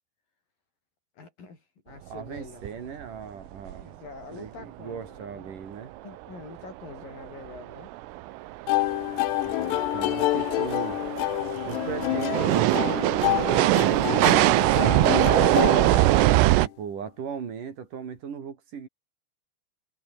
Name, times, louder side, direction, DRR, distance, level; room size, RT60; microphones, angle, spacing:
voice 1, 1.1-2.8 3.8-5.6 6.0-7.9, left 4 dB, 45° left, 7.7 m, -45 dB
voice 2, 2.1-3.9 4.3-5.9 9.4-11.0 11.7-13.1 13.7-15.7 16.4-18.9, right 7 dB, 45° right, 3.9 m, -38 dB
sound 1, 2.4-2.5 2.7-2.8 3.0-3.2 3.7-3.8 6.8-6.9 7.5-16.7, right 17 dB, 80° right, 3.6 m, -23 dB
sound 2, 8.7-16.6, left 18 dB, 90° left, 2.4 m, -28 dB
omnidirectional pair, 5.9 m